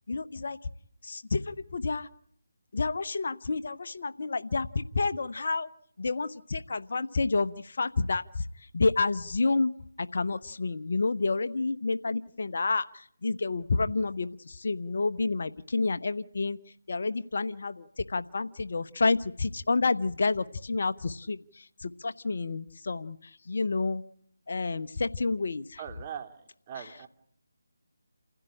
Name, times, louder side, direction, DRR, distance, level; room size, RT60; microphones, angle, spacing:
voice 1, 0.1-0.6 1.0-2.1 2.7-5.7 6.0-16.6 16.9-24.0 24.5-25.8 26.8-26.9, left 3 dB, 55° left, 12 dB, 1.0 m, -29 dB
voice 2, 25.8-27.1, right 8 dB, 30° right, 7 dB, 2.6 m, -41 dB
29.0 x 16.0 x 10.0 m, 0.68 s
figure-of-eight pair, 155°, 0 cm